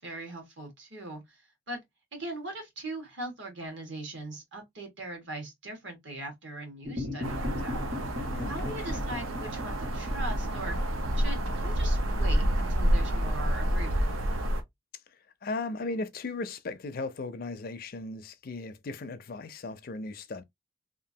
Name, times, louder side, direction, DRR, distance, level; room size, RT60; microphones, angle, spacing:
voice 1, 0.0-1.4 1.7-1.8 2.1-7.8 8.5-10.8 11.1-14.1, right 2 dB, 65° right, 1.5 m, -40 dB
sound 1, 6.8-13.4, left 2 dB, 40° right, 1.6 m, -39 dB
sound 2, 7.2-14.6, equal, 80° right, 0.6 m, -28 dB
voice 2, 8.3-9.1 15.1-20.4, left 3 dB, 45° left, 0.4 m, -37 dB
2.9 x 2.4 x 2.6 m
head